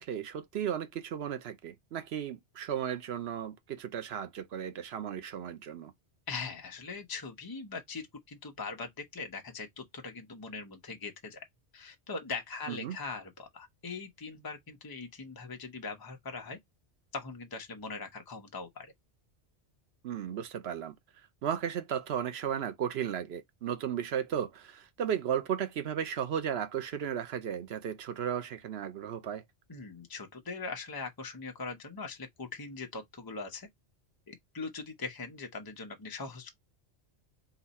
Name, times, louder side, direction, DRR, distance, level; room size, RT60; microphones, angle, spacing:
voice 1, 0.0-5.9 12.7-13.0 20.0-20.9 21.4-29.4, right 9 dB, 65° right, 0.9 m, -35 dB
voice 2, 6.3-11.4 11.7-16.6 17.1-18.9 29.7-33.7 34.3-36.5, left 4 dB, 20° left, 0.8 m, -41 dB
4.0 x 2.6 x 4.0 m
omnidirectional pair, 1.2 m